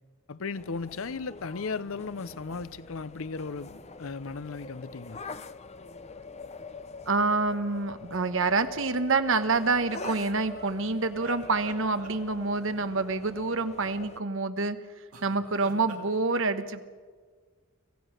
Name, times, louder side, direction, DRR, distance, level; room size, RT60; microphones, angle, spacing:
voice 1, 0.3-5.2, left 4 dB, 65° left, 0.7 m, -36 dB
sound 1, 0.6-14.2, left 4 dB, 30° left, 0.7 m, -44 dB
voice 2, 7.1-14.8 15.2-16.8, right 3 dB, 60° right, 1.2 m, -27 dB
sound 2, 10.0-12.7 15.1-16.1, right 3 dB, 85° right, 2.5 m, -48 dB
25.0 x 15.5 x 6.6 m
head